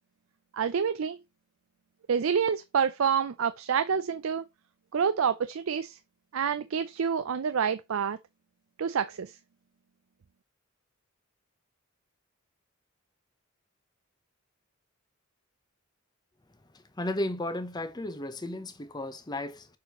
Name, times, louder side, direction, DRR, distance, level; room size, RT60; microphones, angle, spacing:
voice 1, 0.5-1.2 2.1-4.4 4.9-6.0 6.3-8.2 8.8-9.3, right 7 dB, 75° right, 0.5 m, -27 dB
voice 2, 17.0-19.7, left 1 dB, 20° left, 0.8 m, -34 dB
6.7 x 5.0 x 2.9 m
head